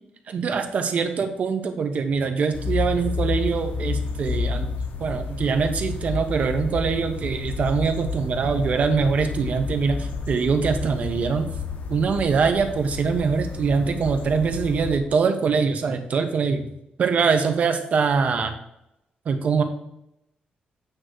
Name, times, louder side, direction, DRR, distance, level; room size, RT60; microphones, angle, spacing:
voice 1, 0.3-4.7 5.0-11.5 11.9-16.7 17.0-18.5 19.2-19.6, right 5 dB, 55° right, 6 dB, 1.0 m, -23 dB
sound 1, 2.5-15.0, left 4 dB, 75° left, 1.2 m, -30 dB
8.8 x 3.2 x 6.2 m, 0.82 s
cardioid pair, 130°, 3 cm